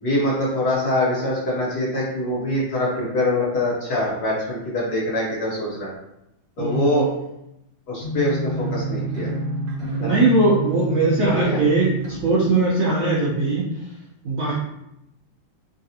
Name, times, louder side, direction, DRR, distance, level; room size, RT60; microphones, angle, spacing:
voice 1, 0.0-5.9 6.6-7.1 7.9-9.3 10.0-10.2 11.2-11.6, left 1 dB, 55° left, -6 dB, 1.4 m, -24 dB
voice 2, 6.6-7.1 10.0-12.0 12.2-13.7 14.2-14.5, right 2 dB, 80° right, -5 dB, 0.7 m, -20 dB
sound 1, 8.0-12.6, right 2 dB, 65° right, 1.3 m, -28 dB
3.4 x 2.4 x 2.7 m, 0.83 s
omnidirectional pair, 2.2 m